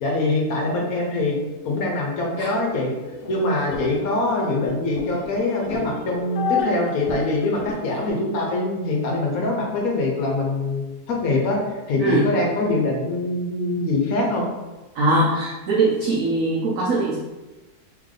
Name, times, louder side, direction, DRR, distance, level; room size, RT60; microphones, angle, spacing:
voice 1, 0.0-1.4 1.6-2.9 3.3-14.5, left 2 dB, 65° left, -1 dB, 1.1 m, -23 dB
sound 1, 3.0-8.1, left 4 dB, 80° left, 1.3 m, -31 dB
voice 2, 12.0-12.3 14.9-17.2, right 2 dB, 65° right, -4 dB, 1.0 m, -21 dB
3.4 x 3.2 x 3.7 m, 1.1 s
omnidirectional pair, 1.8 m